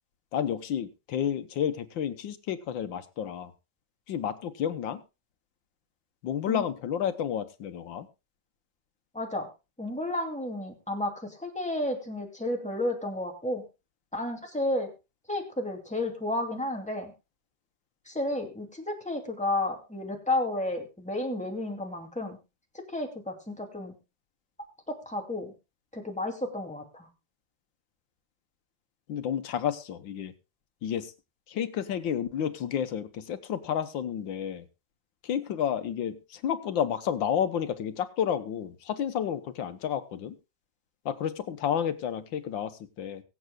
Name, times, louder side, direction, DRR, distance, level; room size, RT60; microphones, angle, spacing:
voice 1, 0.3-3.5 4.1-5.0 6.2-8.1 29.1-30.3 30.8-31.1 31.5-34.7 35.2-40.4 41.1-43.2, left 9 dB, 85° left, 11 dB, 1.8 m, -31 dB
voice 2, 9.1-9.5 9.8-13.6 14.1-14.9 15.3-17.1 18.1-22.4 22.9-23.9 24.9-25.5 25.9-27.1, left 1 dB, 5° left, 1 dB, 2.6 m, -32 dB
23.5 x 7.9 x 2.3 m, 0.28 s
omnidirectional pair, 2.0 m